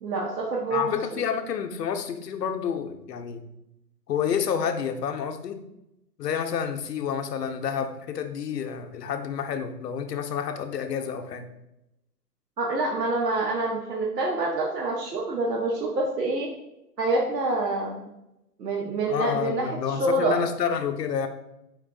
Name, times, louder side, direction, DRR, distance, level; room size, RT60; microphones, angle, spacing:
voice 1, 0.0-1.2 12.6-16.5 17.0-18.1 18.6-20.4, right 2 dB, 80° right, -2 dB, 1.0 m, -27 dB
voice 2, 0.7-3.4 4.1-5.6 6.2-11.4 19.1-21.3, left 7 dB, 75° left, 7 dB, 0.7 m, -29 dB
4.6 x 2.3 x 3.5 m, 0.86 s
hypercardioid pair, 155°, 49 cm